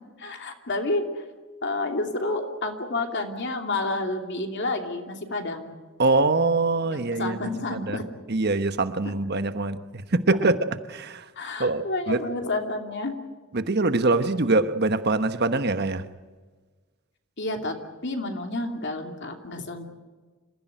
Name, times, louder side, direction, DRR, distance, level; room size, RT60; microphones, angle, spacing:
voice 1, 0.2-1.2 1.6-5.7 6.8-8.1 11.4-13.1 17.4-17.8 18.0-19.9, left 2 dB, 55° left, 2.8 m, -30 dB
voice 2, 6.0-8.0 8.3-10.6 10.9-11.2 11.6-12.3 13.5-16.0, right 3 dB, 50° right, 1.2 m, -24 dB
27.0 x 15.5 x 9.2 m
head